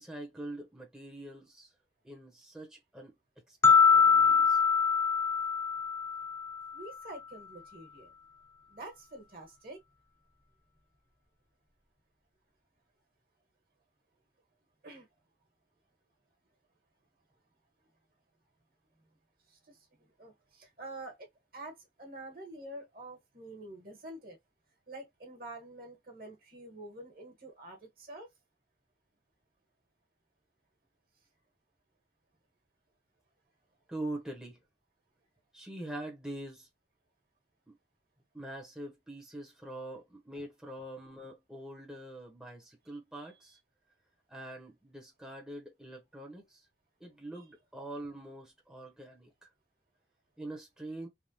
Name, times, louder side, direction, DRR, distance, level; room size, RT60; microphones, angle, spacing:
voice 1, 0.0-1.7 2.0-3.2 3.5-4.6 33.9-34.6 35.5-36.7 37.7-37.8 38.3-43.6 44.3-46.7 47.0-49.3 50.4-51.1, right 1 dB, 5° right, 0.8 m, -44 dB
sound 1, 3.6-6.8, left 6 dB, 15° left, 0.3 m, -24 dB
voice 2, 6.7-8.1 8.7-9.8 14.8-15.1 19.5-21.3 21.5-24.4 24.9-28.3 40.3-40.4, right 1 dB, 55° right, 1.3 m, -47 dB
3.4 x 2.2 x 2.7 m
head